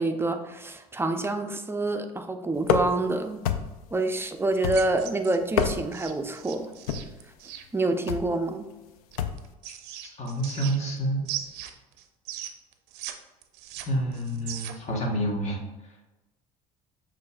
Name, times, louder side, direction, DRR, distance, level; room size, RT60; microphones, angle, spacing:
voice 1, 0.0-3.4 3.9-6.7 7.7-8.7, right 2 dB, 15° right, 6 dB, 0.5 m, -27 dB
sound 1, 2.6-3.1 3.4-3.9 4.6-5.1 5.4-6.1 6.9-7.2 8.1-8.4 9.2-9.5, left 7 dB, 80° left, 0.4 m, -28 dB
sound 2, 4.6-7.6 9.1-11.0 11.2-13.1 13.4-14.9, right 12 dB, 65° right, 0.5 m, -38 dB
voice 2, 10.0-11.3 13.9-16.0, right 1 dB, 35° left, 0 dB, 1.3 m, -29 dB
6.6 x 3.1 x 2.3 m, 1.1 s
hypercardioid pair, 70°, 19 cm